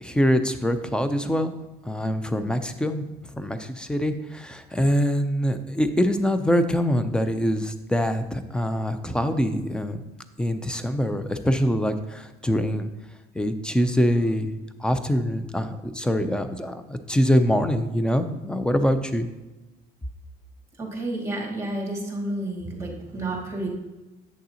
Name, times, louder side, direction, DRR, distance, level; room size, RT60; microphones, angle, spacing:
voice 1, 0.0-1.5 1.8-10.0 10.4-12.9 13.3-14.5 14.8-19.3, equal, 5° left, 9 dB, 0.5 m, -24 dB
voice 2, 20.8-23.7, right 1 dB, 15° right, 0 dB, 2.1 m, -30 dB
8.6 x 6.5 x 2.9 m, 1.1 s
cardioid pair, 110°, 17 cm